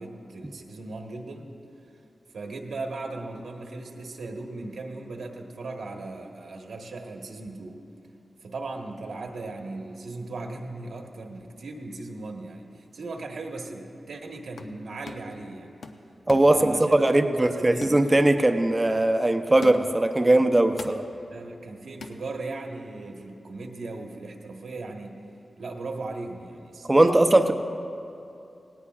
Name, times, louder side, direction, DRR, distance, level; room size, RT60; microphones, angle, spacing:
voice 1, 0.0-1.5 2.3-7.8 8.4-15.7 16.4-17.0 17.5-18.0 21.3-25.2 25.6-27.5, right 3 dB, 90° right, 2 dB, 1.3 m, -37 dB
sound 1, 14.3-14.8 15.1-15.4 15.8-17.3 17.8-18.1 18.5-18.7 19.6-20.0 20.8-21.1 22.0-22.2, left 4 dB, 85° left, 0.7 m, -41 dB
voice 2, 16.3-21.0 26.9-27.5, right 1 dB, 20° right, 7 dB, 0.6 m, -20 dB
18.5 x 18.0 x 2.4 m, 2.7 s
wide cardioid pair, 130°, 0 cm